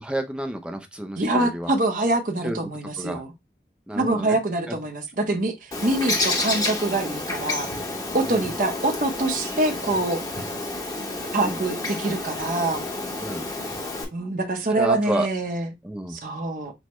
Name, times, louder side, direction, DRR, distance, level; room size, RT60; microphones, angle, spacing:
voice 1, 0.0-1.7 2.4-2.6 3.0-3.2 3.9-4.4 8.2-8.5 11.4-11.6 13.2-13.5 14.8-15.3 15.8-16.2, right 1 dB, 5° right, 0.5 m, -30 dB
voice 2, 1.2-3.3 3.9-7.8 8.1-10.2 11.3-12.8 14.1-15.7 16.1-16.7, right 2 dB, 50° right, 0.7 m, -25 dB
Bird, 5.7-14.0, left 2 dB, 20° left, 0.9 m, -30 dB
6.1 x 2.1 x 2.9 m
head